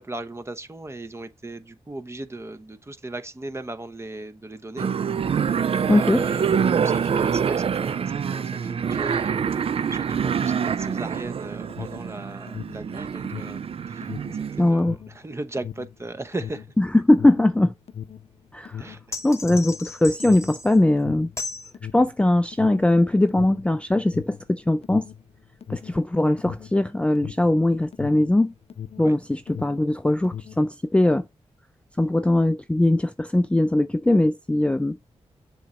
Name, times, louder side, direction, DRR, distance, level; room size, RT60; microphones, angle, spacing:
voice 1, 0.0-4.9 5.9-14.1 14.6-16.7 18.8-19.2 29.0-29.2, right 2 dB, 25° right, 0.8 m, -37 dB
sound 1, 4.8-14.7, right 7 dB, 55° right, 0.4 m, -26 dB
voice 2, 5.9-6.2 14.6-15.0 16.8-17.7 18.5-18.9 19.2-21.3 21.9-25.1 25.7-28.5 29.0-31.2 32.0-35.0, left 1 dB, 10° left, 0.4 m, -20 dB
Alarm, 11.7-29.2 29.4-30.7, left 9 dB, 60° left, 0.7 m, -39 dB
sound 2, 19.1-20.8 21.4-21.7, left 3 dB, 25° left, 1.0 m, -35 dB
7.0 x 3.1 x 4.9 m
cardioid pair, 65°, 11 cm